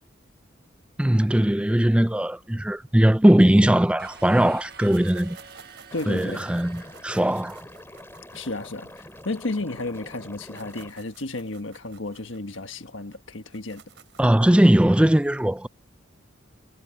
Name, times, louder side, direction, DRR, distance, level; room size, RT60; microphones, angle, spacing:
voice 1, 1.0-5.4 6.1-7.6 14.2-15.7, right 1 dB, 5° right, 0.3 m, -19 dB
sound 1, 4.0-8.2, right 5 dB, 50° right, 1.5 m, -48 dB
sound 2, 4.7-10.0 10.3-14.4, right 7 dB, 70° right, 3.6 m, -53 dB
voice 2, 5.9-6.5 8.3-13.8, left 2 dB, 85° left, 1.5 m, -33 dB
Liquid, 5.9-10.9, left 1 dB, 10° left, 6.2 m, -45 dB
head